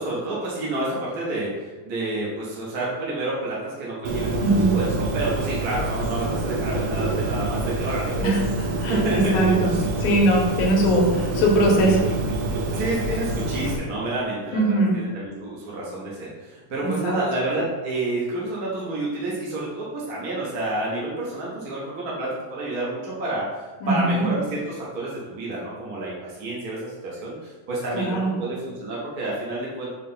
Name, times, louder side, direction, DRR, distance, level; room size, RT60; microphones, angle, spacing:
voice 1, 0.0-4.4 4.7-8.3 8.9-9.4 9.7-9.8 12.7-14.6 14.9-23.4 23.9-29.9, right 2 dB, 50° right, -6 dB, 1.1 m, -29 dB
Bird, 4.1-13.8, right 2 dB, 90° right, 2.4 m, -26 dB
voice 2, 4.4-4.8 8.2-8.5 8.8-9.7 10.0-12.1 14.5-15.0 16.8-17.2 23.8-24.3 27.9-28.3, right 1 dB, 75° left, -1 dB, 2.5 m, -21 dB
6.5 x 3.3 x 5.6 m, 1.2 s
omnidirectional pair, 3.6 m